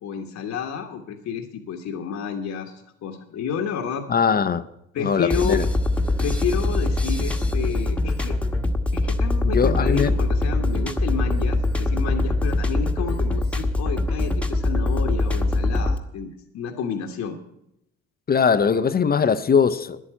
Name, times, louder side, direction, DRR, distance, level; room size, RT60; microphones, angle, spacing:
voice 1, 0.0-4.1 4.9-5.6 6.2-8.4 8.9-16.3 16.5-17.4, left 7 dB, 60° left, 1.2 m, -30 dB
voice 2, 4.1-4.6 5.0-5.7 9.4-10.1 18.3-20.0, left 6 dB, 30° left, 0.6 m, -20 dB
sound 1, 5.3-16.0, left 2 dB, 5° left, 1.2 m, -23 dB
10.0 x 8.5 x 8.9 m
supercardioid pair, 85°, 31 cm